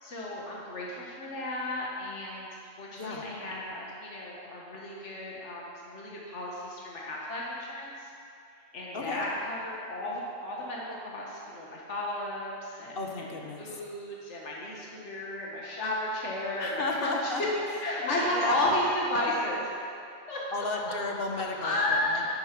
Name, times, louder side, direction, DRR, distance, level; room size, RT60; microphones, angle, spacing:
voice 1, 0.0-2.5 2.8-8.1 8.7-17.3 17.8-19.6 20.3-20.4 21.6-22.4, left 1 dB, 70° left, -4 dB, 1.9 m, -33 dB
voice 2, 3.0-3.3 8.9-9.2 13.0-13.7 16.6-17.4 18.0-18.5 20.5-22.2, left 3 dB, 50° left, 1 dB, 1.4 m, -33 dB
11.5 x 8.8 x 6.0 m, 2.5 s
omnidirectional pair, 1.3 m